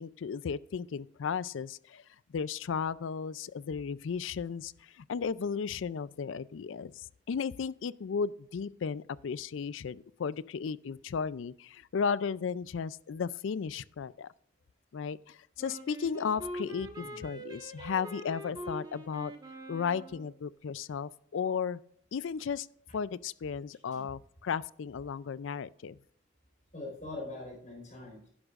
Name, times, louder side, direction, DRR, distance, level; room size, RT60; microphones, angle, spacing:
voice 1, 0.0-2.0 2.3-14.3 14.9-19.3 19.7-21.8 22.1-22.7 22.9-26.0, left 6 dB, 75° left, 0.4 m, -35 dB
Wind instrument woodwind instrument, 15.6-20.3, equal, 20° right, 1.3 m, -43 dB
voice 2, 26.7-28.3, left 2 dB, 40° left, 4.4 m, -43 dB
11.5 x 11.0 x 2.4 m
head